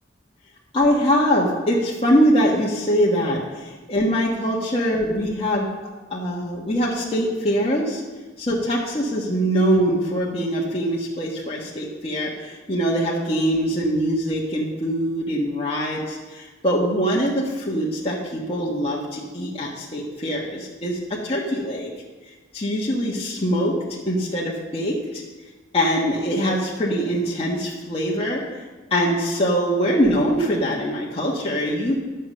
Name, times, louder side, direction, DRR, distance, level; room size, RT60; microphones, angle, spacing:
voice 1, 0.7-5.7 6.1-8.0 8.4-21.9 22.5-25.2 25.7-28.4 28.9-32.0, equal, 30° left, -5 dB, 1.4 m, -23 dB
10.5 x 6.8 x 6.6 m, 1.3 s
head